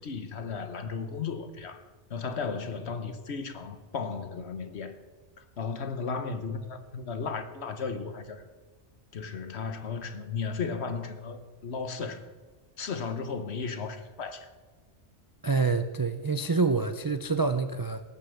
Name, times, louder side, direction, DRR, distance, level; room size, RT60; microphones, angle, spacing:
voice 1, 0.0-1.8 2.1-5.0 5.6-8.4 9.1-12.2 12.8-14.5, left 5 dB, 65° left, 1.3 m, -35 dB
voice 2, 15.4-18.0, right 4 dB, 35° right, 0.3 m, -27 dB
18.0 x 6.8 x 7.1 m
omnidirectional pair, 1.2 m